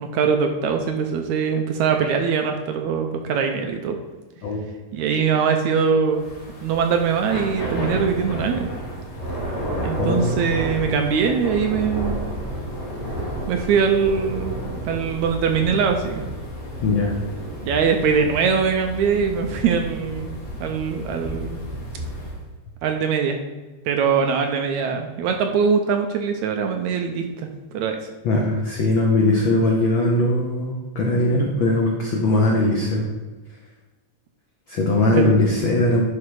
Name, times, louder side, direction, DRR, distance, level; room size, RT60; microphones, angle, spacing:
voice 1, 0.0-4.0 4.9-6.2 6.6-8.7 9.8-12.2 13.5-14.5 14.9-16.2 17.6-21.6 22.8-23.4 23.9-27.5 27.7-28.1 35.1-35.4, right 6 dB, 75° right, 4 dB, 1.8 m, -22 dB
Thunder / Rain, 6.1-22.4, equal, 50° left, 2.6 m, -31 dB
voice 2, 10.0-10.5 16.8-17.1 28.2-33.0 34.7-36.0, left 2 dB, 85° left, -1 dB, 1.0 m, -20 dB
11.0 x 4.3 x 4.7 m, 1.3 s
omnidirectional pair, 3.7 m